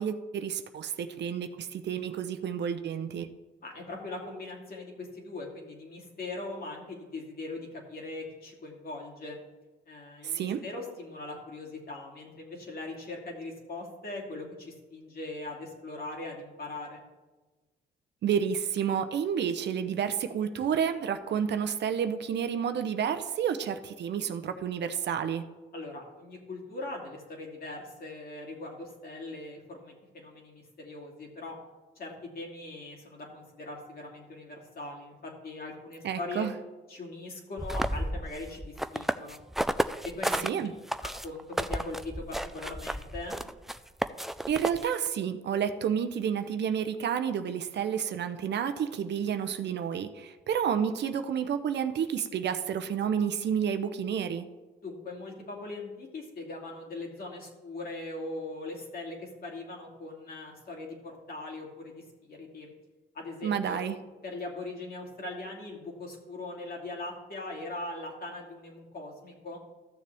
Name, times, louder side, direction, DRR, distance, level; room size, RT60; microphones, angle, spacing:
voice 1, 0.0-3.3 10.2-10.6 18.2-25.4 36.0-36.5 40.4-40.7 44.5-54.4 63.4-64.0, right 8 dB, 60° right, 10 dB, 0.7 m, -30 dB
voice 2, 3.6-9.4 9.9-17.0 25.7-31.6 31.9-36.5 36.9-39.4 40.0-40.4 41.0-43.4 54.8-62.7 63.1-63.8 64.2-69.6, left 2 dB, 50° left, -1 dB, 2.7 m, -40 dB
sound 1, 37.6-40.5 40.9-45.1, equal, ahead, 0.3 m, -32 dB
14.0 x 6.6 x 3.5 m, 1.2 s
cardioid pair, 90°, 20 cm